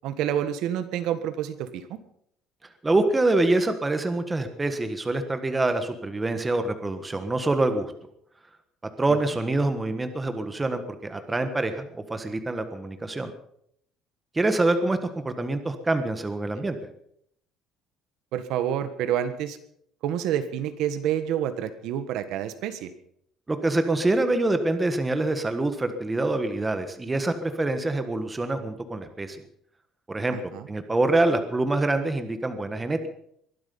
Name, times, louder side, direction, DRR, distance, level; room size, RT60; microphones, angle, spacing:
voice 1, 0.0-2.0 9.1-9.2 16.5-16.6 18.3-19.6 20.0-22.9 30.3-30.7, right 10 dB, 65° right, 10 dB, 1.5 m, -28 dB
voice 2, 2.8-7.9 9.0-13.3 14.3-16.8 23.5-29.4 30.1-33.0, right 2 dB, 10° right, 8 dB, 1.4 m, -25 dB
22.0 x 12.0 x 5.4 m, 0.69 s
cardioid pair, 160°, 0 cm